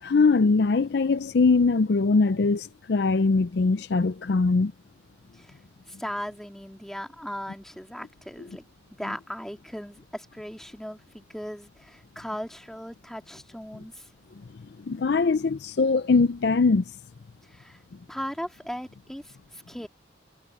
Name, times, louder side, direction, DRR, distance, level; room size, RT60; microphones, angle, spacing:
voice 1, 0.0-4.7 14.9-16.8, left 4 dB, 60° left, 0.5 m, -22 dB
voice 2, 5.9-8.6 9.0-14.1 17.4-17.8 18.1-19.9, equal, ahead, 2.4 m, -38 dB
head